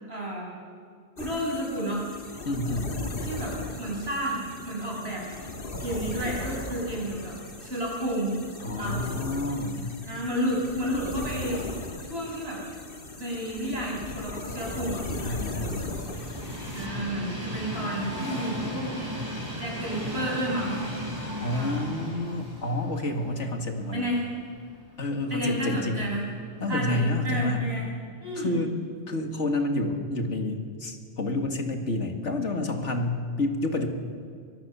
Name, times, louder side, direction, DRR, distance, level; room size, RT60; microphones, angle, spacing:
voice 1, 0.1-0.5 1.2-2.1 3.2-5.2 5.8-7.4 7.6-8.4 8.8-9.0 10.1-11.7 12.0-12.6 13.2-15.0 16.7-19.0 19.6-20.8 21.5-21.7 23.9-24.3 25.3-27.9 28.2-28.6, right 1 dB, 60° right, -2 dB, 7.0 m, -31 dB
sound 1, 1.2-16.9, left 2 dB, 50° left, 2.0 m, -37 dB
voice 2, 2.5-2.9 8.6-9.9 15.3-15.9 21.4-24.0 25.0-26.1 26.6-27.6 28.4-28.7 29.1-33.9, left 2 dB, 80° left, 4 dB, 2.5 m, -29 dB
Train, 14.3-24.4 24.9-25.0 26.1-26.2, equal, 30° right, 8.3 m, -36 dB
24.0 x 22.5 x 7.1 m, 2.3 s
omnidirectional pair, 1.2 m